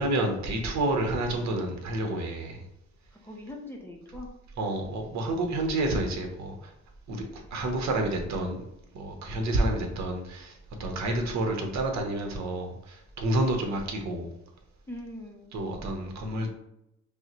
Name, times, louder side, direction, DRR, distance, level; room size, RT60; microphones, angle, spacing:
voice 1, 0.0-2.6 4.6-6.7 7.1-8.6 8.9-14.3 15.5-16.5, right 1 dB, 65° right, 3 dB, 1.0 m, -29 dB
voice 2, 3.1-4.3 5.4-5.6 14.9-15.6, left 1 dB, 5° left, -1 dB, 0.6 m, -42 dB
5.2 x 2.1 x 3.0 m, 0.85 s
cardioid pair, 90°, 30 cm